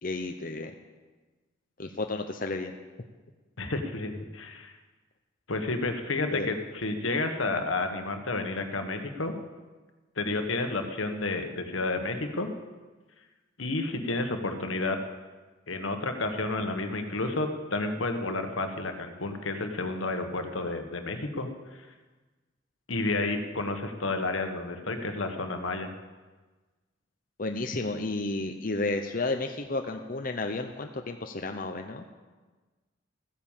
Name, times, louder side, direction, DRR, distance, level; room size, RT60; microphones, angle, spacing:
voice 1, 0.0-0.7 1.8-2.7 6.3-6.5 27.4-32.1, left 2 dB, 45° left, 4 dB, 0.8 m, -32 dB
voice 2, 3.6-4.7 5.5-9.3 10.2-12.5 13.6-15.0 15.7-21.9 22.9-25.9, left 2 dB, 80° left, 6 dB, 1.5 m, -31 dB
15.5 x 9.8 x 7.4 m, 1.3 s
head